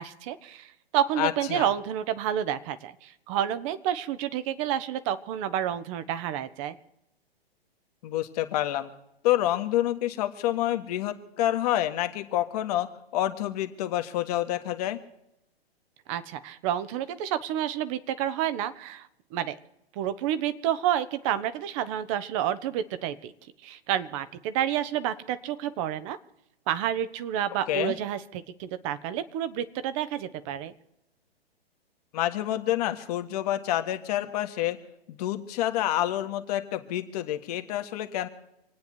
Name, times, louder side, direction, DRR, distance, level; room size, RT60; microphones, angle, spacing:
voice 1, 0.0-6.8 16.1-19.6 19.9-23.3 23.6-26.2 26.7-30.7, right 10 dB, 30° right, 13 dB, 1.0 m, -29 dB
voice 2, 1.2-1.7 8.0-8.9 9.2-12.9 13.1-15.0 27.7-27.9 32.1-34.8 35.1-38.3, left 13 dB, 40° left, 8 dB, 1.5 m, -28 dB
27.0 x 9.5 x 4.5 m, 0.83 s
figure-of-eight pair, 115°, 31 cm